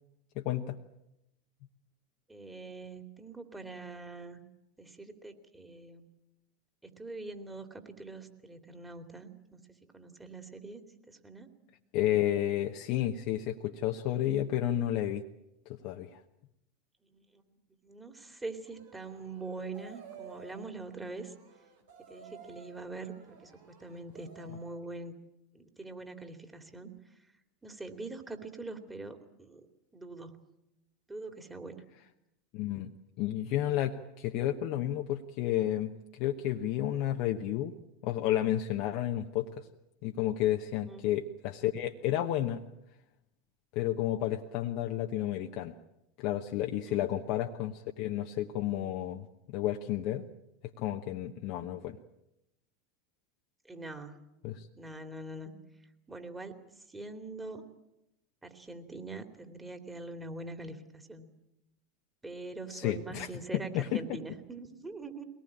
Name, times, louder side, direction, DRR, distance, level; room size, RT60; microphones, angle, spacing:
voice 1, 0.3-0.8 11.9-15.2 15.7-16.2 32.5-32.9 33.2-37.7 38.0-39.7 40.0-42.6 43.7-45.7 46.2-50.3 50.8-52.0 54.4-54.7 62.7-63.3 63.7-64.0, left 12 dB, 55° left, 3 dB, 1.1 m, -31 dB
voice 2, 2.3-4.4 4.8-6.0 6.8-11.5 17.0-21.3 22.1-25.1 25.5-26.9 27.6-29.7 29.9-30.4 31.1-31.8 40.7-41.1 46.8-47.1 53.6-54.2 54.8-55.5 56.1-56.5 56.9-57.6 58.4-61.3 62.2-65.2, right 3 dB, 15° right, 6 dB, 2.8 m, -43 dB
sound 1, 18.6-24.8, right 6 dB, 75° right, 4.4 m, -54 dB
22.5 x 18.5 x 8.8 m, 0.88 s
hypercardioid pair, 85°, 0 cm